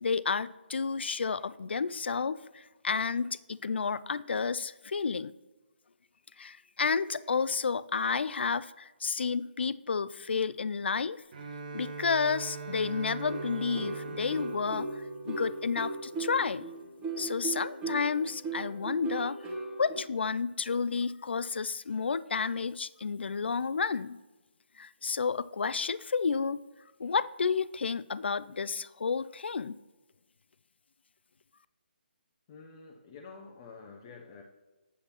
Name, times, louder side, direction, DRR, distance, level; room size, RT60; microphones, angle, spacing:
voice 1, 0.0-5.3 6.4-11.2 11.7-16.6 17.2-19.4 19.8-24.2 24.8-26.6 27.0-29.8, left 5 dB, 75° left, 17 dB, 0.3 m, -31 dB
Bowed string instrument, 11.3-16.1, right 4 dB, 45° right, 0.9 m, -42 dB
sound 1, 13.2-20.0, right 3 dB, 15° right, 1.0 m, -38 dB
voice 2, 32.5-34.4, left 4 dB, 25° left, 1 dB, 0.6 m, -49 dB
8.3 x 7.8 x 2.9 m, 1.2 s
hypercardioid pair, 160°, 6 cm